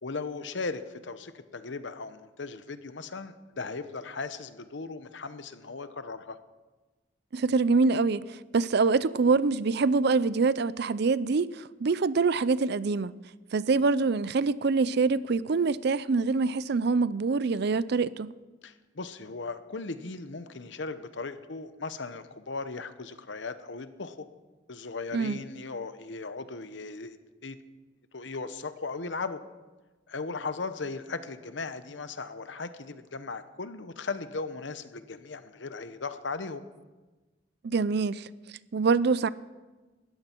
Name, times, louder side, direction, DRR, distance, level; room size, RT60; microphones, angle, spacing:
voice 1, 0.0-6.4 18.6-24.2 24.7-27.6 28.1-29.4 30.1-36.7, left 4 dB, 70° left, 0.9 m, -37 dB
voice 2, 7.3-8.3 8.5-13.1 13.5-18.3 25.1-25.4 37.6-38.3 38.7-39.3, right 4 dB, 60° right, 0.5 m, -25 dB
19.0 x 14.0 x 4.5 m
head